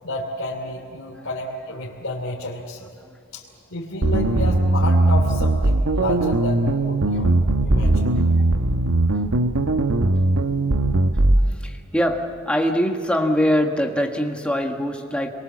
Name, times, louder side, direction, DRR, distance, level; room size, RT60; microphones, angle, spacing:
voice 1, 0.0-2.9 3.3-3.4 3.7-7.3 7.6-8.1, left 1 dB, 60° left, -4 dB, 3.0 m, -31 dB
sound 1, 4.0-11.4, right 2 dB, 75° right, 1.0 m, -19 dB
voice 2, 11.4-15.3, equal, 5° left, 2 dB, 1.6 m, -23 dB
26.5 x 23.0 x 7.5 m, 2.4 s
head